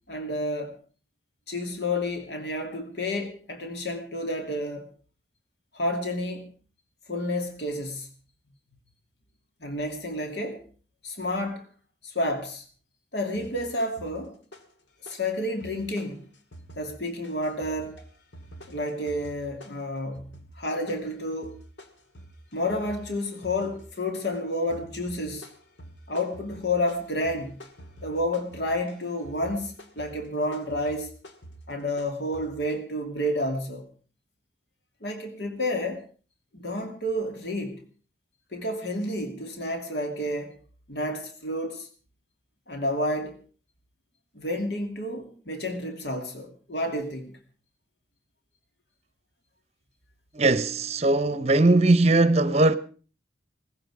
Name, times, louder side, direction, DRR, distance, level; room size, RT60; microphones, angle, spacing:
voice 1, 0.1-0.8 1.5-4.9 5.7-6.5 7.1-8.1 9.6-10.6 11.0-11.6 12.0-12.6 13.1-14.3 15.0-16.3 16.8-18.0 18.7-20.3 20.6-21.6 22.5-25.5 26.1-27.6 28.0-31.1 31.7-33.8 35.0-36.0 36.5-37.8 38.5-40.5 40.9-41.9 42.7-43.4 44.3-47.3, left 1 dB, 65° left, 2.6 m, -30 dB
sound 1, 13.3-14.8 15.1-32.8, right 1 dB, 85° left, 2.2 m, -48 dB
voice 2, 50.3-52.8, right 2 dB, 35° right, 0.8 m, -20 dB
18.0 x 15.0 x 4.9 m
head